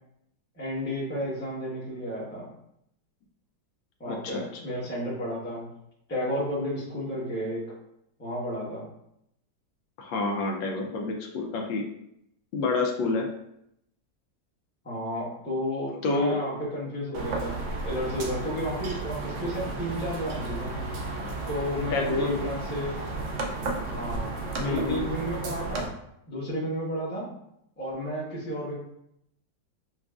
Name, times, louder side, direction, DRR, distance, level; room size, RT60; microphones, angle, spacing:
voice 1, 0.5-2.5 4.0-5.7 6.1-7.7 8.2-8.9 14.8-20.8 21.5-23.0 23.9-25.9 26.3-27.3 27.8-28.7, equal, 10° left, -7 dB, 0.8 m, -32 dB
voice 2, 4.1-4.4 10.0-11.8 12.5-13.3 16.0-16.4 21.9-22.4 24.6-25.0, left 3 dB, 80° left, 2 dB, 1.3 m, -28 dB
sound 1, 17.1-25.9, right 3 dB, 80° right, 0.6 m, -33 dB
5.8 x 2.3 x 2.4 m, 0.77 s
omnidirectional pair, 2.0 m